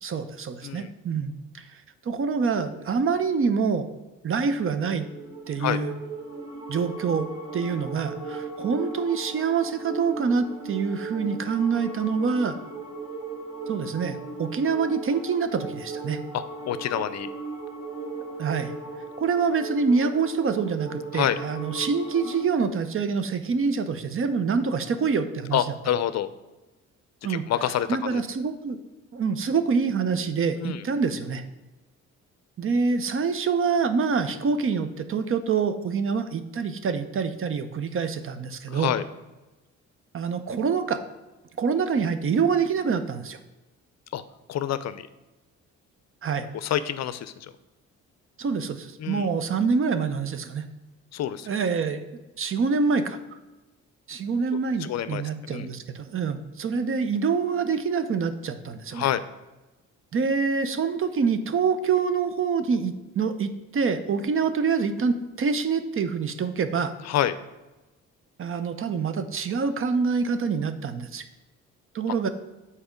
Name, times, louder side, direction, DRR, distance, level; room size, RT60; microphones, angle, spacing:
voice 1, 0.0-1.7 2.0-3.9 4.2-5.1 5.5-5.9 6.7-12.6 13.7-16.2 18.4-18.7 19.2-25.6 27.2-27.4 27.9-28.8 29.1-31.4 32.6-38.9 40.1-41.0 41.6-43.4 46.2-46.5 48.4-50.7 51.5-52.0 52.4-53.2 54.1-59.1 60.1-66.9 68.4-71.2 71.9-72.3, right 5 dB, 45° right, 10 dB, 0.7 m, -26 dB
sound 1, 4.9-22.4, right 3 dB, 15° right, 2.0 m, -37 dB
voice 2, 16.3-17.3 21.1-21.4 25.5-26.3 27.3-28.2 30.6-30.8 38.7-39.0 44.1-44.2 44.5-45.0 46.5-47.5 49.0-49.3 51.1-51.5 54.8-55.2 55.5-55.7 58.9-59.2 67.0-67.4, left 11 dB, 60° left, 14 dB, 0.5 m, -27 dB
7.1 x 4.3 x 5.1 m, 1.1 s
cardioid pair, 90°, 30 cm